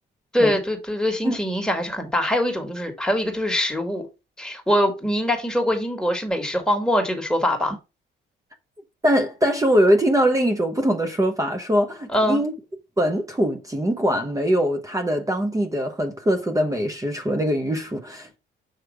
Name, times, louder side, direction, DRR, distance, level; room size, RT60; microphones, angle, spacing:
voice 1, 0.3-4.0 4.4-7.8 12.1-12.4, equal, 5° left, 1.9 m, -23 dB
voice 2, 9.0-12.5 13.0-18.4, equal, 15° right, 0.9 m, -22 dB
6.5 x 3.1 x 4.7 m
cardioid pair, 90°, 20 cm